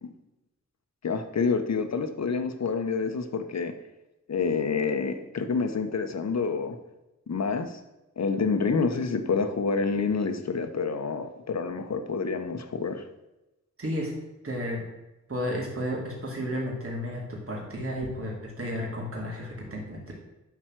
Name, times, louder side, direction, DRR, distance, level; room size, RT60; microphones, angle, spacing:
voice 1, 1.0-3.7 4.3-6.8 7.3-7.8 8.2-13.0, left 5 dB, 60° left, 7 dB, 1.1 m, -28 dB
voice 2, 13.8-14.1 14.4-14.8 15.3-20.1, equal, 50° right, -2 dB, 2.6 m, -32 dB
11.0 x 4.6 x 7.5 m, 0.98 s
wide cardioid pair, 140°, 30 cm